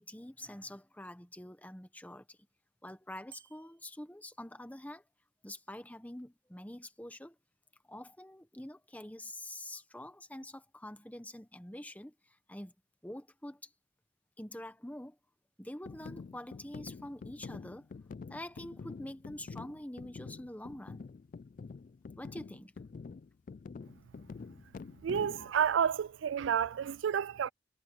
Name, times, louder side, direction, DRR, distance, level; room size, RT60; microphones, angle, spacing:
voice 1, 0.0-2.4 2.8-5.0 5.4-7.3 7.9-12.7 13.0-13.7 14.4-15.2 15.6-17.9 18.3-21.1 22.2-22.7, left 1 dB, 10° left, 1.3 m, -46 dB
Bicycle bell, 3.3-3.9, right 8 dB, 55° right, 1.6 m, -55 dB
sound 1, 15.8-25.5, left 4 dB, 40° left, 0.3 m, -47 dB
voice 2, 25.0-27.5, right 8 dB, 75° right, 0.4 m, -30 dB
head